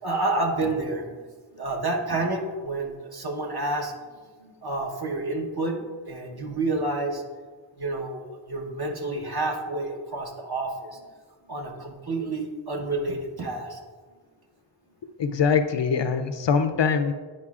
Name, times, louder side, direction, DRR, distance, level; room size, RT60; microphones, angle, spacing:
voice 1, 0.0-1.2 1.5-4.1 4.4-7.2 7.8-11.1 11.5-13.8, right 2 dB, 50° right, 0 dB, 1.1 m, -29 dB
voice 2, 15.2-17.1, left 6 dB, 60° left, 9 dB, 0.5 m, -23 dB
9.8 x 5.2 x 2.4 m, 1.5 s
wide cardioid pair, 50°, 50 cm